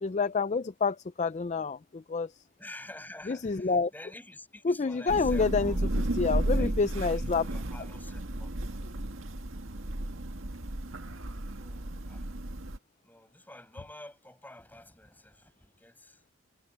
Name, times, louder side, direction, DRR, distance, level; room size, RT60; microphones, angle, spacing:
voice 1, 0.0-2.3 3.3-3.9 4.6-5.8 6.2-7.5, left 4 dB, 35° left, 0.4 m, -28 dB
voice 2, 2.6-5.9 6.5-8.5 11.6-12.3 13.0-16.3, left 1 dB, 10° left, 6.5 m, -49 dB
Thunder / Rain, 5.1-12.8, right 1 dB, 85° right, 1.8 m, -33 dB
head